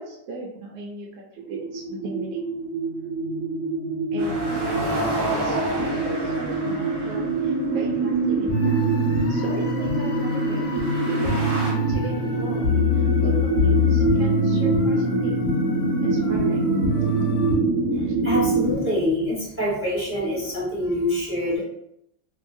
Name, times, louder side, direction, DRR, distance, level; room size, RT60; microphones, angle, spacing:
voice 1, 0.0-2.4 4.1-8.8 9.3-10.6 11.0-12.6 12.9-15.4 16.0-16.7 18.0-18.1, right 3 dB, 75° right, -1 dB, 1.1 m, -37 dB
sound 1, 1.4-18.8, right 2 dB, 90° right, 1.4 m, -25 dB
sound 2, 4.2-11.7, right 1 dB, 50° right, 1.1 m, -31 dB
sound 3, 8.5-17.6, left 2 dB, 70° left, 1.0 m, -25 dB
voice 2, 17.9-21.6, left 1 dB, 10° right, -9 dB, 0.8 m, -26 dB
2.8 x 2.7 x 2.5 m, 0.76 s
omnidirectional pair, 2.2 m